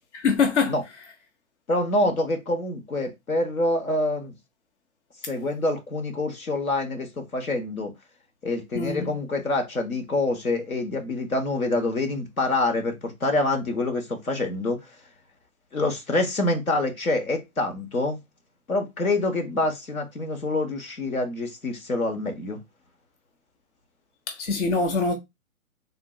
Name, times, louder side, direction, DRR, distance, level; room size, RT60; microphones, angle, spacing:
voice 1, 0.2-0.7 8.7-9.1 24.3-25.1, left 4 dB, 60° left, 0.9 m, -23 dB
voice 2, 1.7-4.3 5.2-7.9 8.4-14.8 15.7-18.2 18.7-22.6, left 2 dB, 85° left, 1.1 m, -26 dB
3.7 x 2.6 x 2.3 m
figure-of-eight pair, 125°, 41 cm